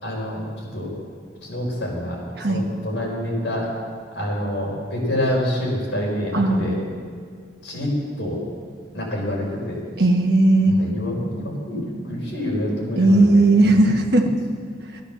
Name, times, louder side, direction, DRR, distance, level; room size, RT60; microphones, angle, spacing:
voice 1, 0.0-0.4 0.7-0.9 1.4-2.2 2.5-3.7 4.1-6.8 7.6-7.9 8.2-8.4 8.9-9.8 10.6-11.8 12.1-13.4, left 1 dB, 70° left, -4 dB, 4.9 m, -26 dB
voice 2, 6.3-6.7 10.0-10.8 12.9-14.3 14.9-15.0, right 2 dB, 55° right, 1 dB, 1.4 m, -17 dB
14.0 x 10.5 x 7.1 m, 2.1 s
head